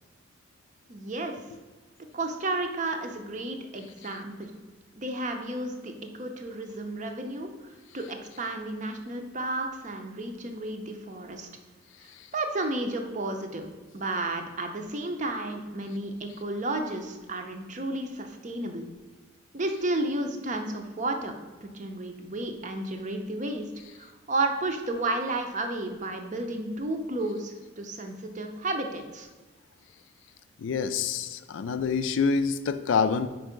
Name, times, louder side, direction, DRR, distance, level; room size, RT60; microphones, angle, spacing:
voice 1, 0.9-1.3 2.1-4.5 4.9-7.5 7.9-11.5 12.3-13.7 13.9-18.8 19.5-21.3 21.6-23.7 24.0-29.3, right 2 dB, 35° right, 5 dB, 0.6 m, -32 dB
voice 2, 30.6-33.3, left 5 dB, 70° left, 12 dB, 0.3 m, -26 dB
4.6 x 4.5 x 5.1 m, 1.3 s
head